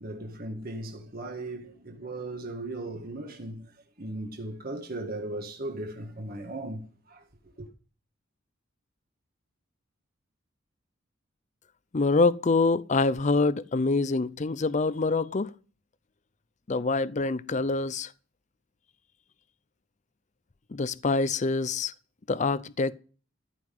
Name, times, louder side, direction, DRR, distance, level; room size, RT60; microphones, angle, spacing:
voice 1, 0.0-7.2 7.6-7.7, right 2 dB, 50° right, 1.8 m, -37 dB
voice 2, 11.9-15.5 16.7-18.1 20.7-21.9 22.3-22.9, left 3 dB, 35° left, 0.5 m, -25 dB
14.0 x 5.7 x 9.3 m
head